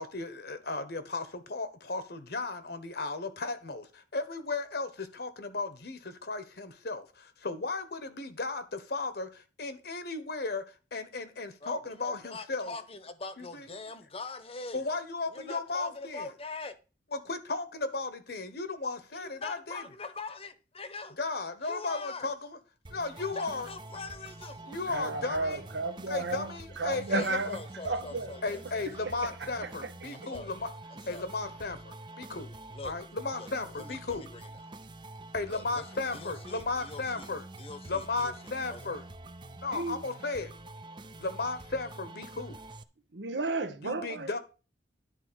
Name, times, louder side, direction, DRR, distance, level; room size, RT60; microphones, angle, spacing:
voice 1, 0.0-12.7 13.4-13.7 14.7-16.3 17.1-19.8 21.2-22.6 22.9-23.7 24.6-25.6 26.1-27.4 28.4-30.7 31.1-32.5 32.8-34.3 35.3-37.4 37.8-39.0 39.6-40.5 41.2-42.6 43.8-44.4, left 3 dB, 60° left, 1.2 m, -35 dB
voice 2, 11.6-14.8 15.3-16.8 19.1-21.2 21.6-22.3 23.2-24.7 26.9-29.6 30.1-30.5 30.9-31.3 32.7-32.9 33.4-33.5 33.8-34.5 35.5-38.3 38.7-38.9, left 3 dB, 35° left, 1.0 m, -43 dB
sound 1, 22.8-42.8, right 2 dB, 25° right, 0.6 m, -47 dB
voice 3, 24.9-26.5 26.8-27.6 27.8-28.4 39.7-40.0 43.1-44.3, right 3 dB, 80° right, 1.1 m, -32 dB
10.5 x 4.5 x 6.3 m
head